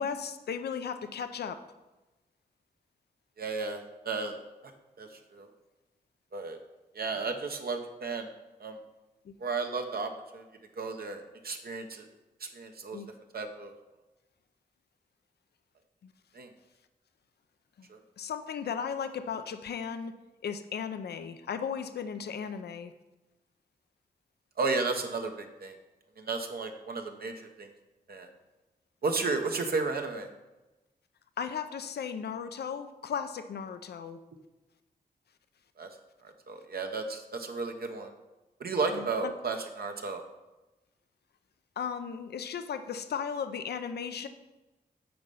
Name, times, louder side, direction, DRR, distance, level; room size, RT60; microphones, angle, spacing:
voice 1, 0.0-1.6 9.3-9.4 12.9-13.1 16.0-16.1 17.8-17.9 18.2-22.9 31.4-34.2 38.9-39.3 41.8-44.3, left 7 dB, 80° left, 9 dB, 0.5 m, -36 dB
voice 2, 3.4-4.3 4.6-4.7 5.0-5.5 6.3-6.6 6.9-8.3 8.6-8.8 9.4-10.4 10.8-12.1 12.4-13.0 13.3-13.7 16.3-16.5 17.9-18.0 24.6-25.7 26.2-27.7 28.1-28.3 29.0-30.3 35.8-35.9 36.2-38.1 38.6-40.2, right 4 dB, 65° right, 4 dB, 0.8 m, -33 dB
8.6 x 4.2 x 5.4 m, 1.1 s
cardioid pair, 65°, 17 cm